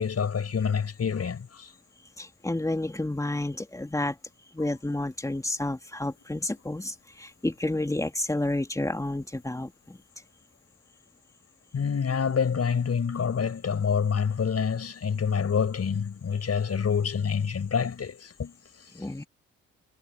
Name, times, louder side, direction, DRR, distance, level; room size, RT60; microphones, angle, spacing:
voice 1, 0.0-1.7 11.7-18.5, left 6 dB, 50° left, 5.8 m, -27 dB
voice 2, 2.2-4.2 4.5-10.0 18.9-19.2, left 1 dB, 10° left, 2.8 m, -30 dB
supercardioid pair, 55°, 32 cm